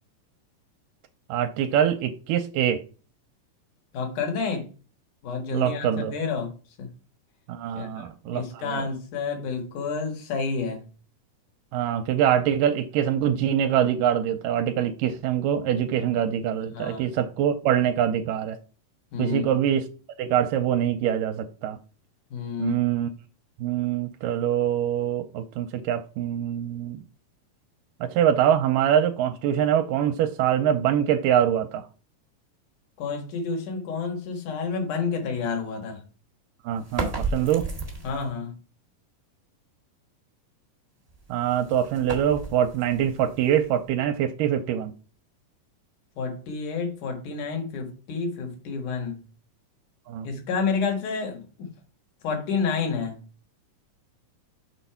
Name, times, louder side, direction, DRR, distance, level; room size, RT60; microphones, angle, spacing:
voice 1, 1.3-2.8 5.5-6.1 7.5-8.9 11.7-18.6 19.2-19.8 20.2-21.8 22.6-23.1 23.6-27.0 28.0-31.9 36.6-37.7 41.3-44.9 50.1-50.3, right 10 dB, 85° right, 2.3 m, -24 dB
voice 2, 3.9-4.7 5.2-6.5 6.8-6.9 7.7-10.8 16.7-17.1 19.1-19.6 22.3-22.8 33.0-36.0 38.0-38.5 46.2-49.2 50.2-51.7 52.2-53.2, left 5 dB, 65° left, 3.1 m, -30 dB
sound 1, 36.8-38.4 41.1-44.0, right 3 dB, 20° right, 0.9 m, -34 dB
6.5 x 4.0 x 5.7 m
omnidirectional pair, 4.0 m